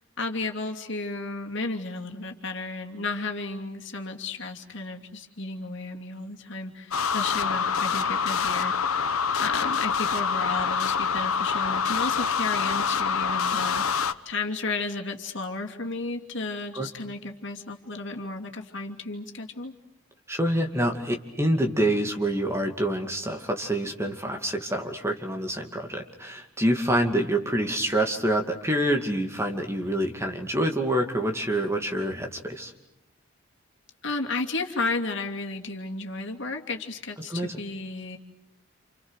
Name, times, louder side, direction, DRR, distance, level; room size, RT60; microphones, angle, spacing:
voice 1, 0.2-8.9 9.4-19.7 34.0-38.2, left 3 dB, 55° left, 2 dB, 2.9 m, -33 dB
sound 1, 6.9-14.1, left 6 dB, 85° left, 1.2 m, -26 dB
voice 2, 20.3-32.7 37.3-37.5, right 1 dB, 10° right, 3 dB, 2.4 m, -26 dB
29.5 x 28.5 x 6.5 m, 0.83 s
head